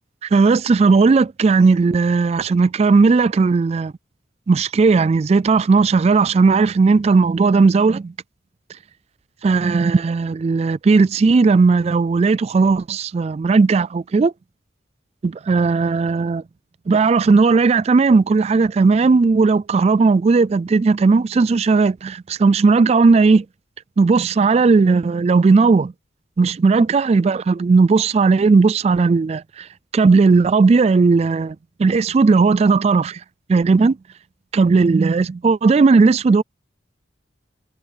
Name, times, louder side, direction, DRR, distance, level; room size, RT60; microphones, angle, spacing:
voice 1, 0.2-3.9 4.5-8.1 9.4-14.3 15.2-16.4 16.9-23.4 24.0-25.9 26.4-29.7 29.9-33.2 33.5-34.0 34.5-36.4, right 4 dB, 35° right, 0.3 m, -16 dB
head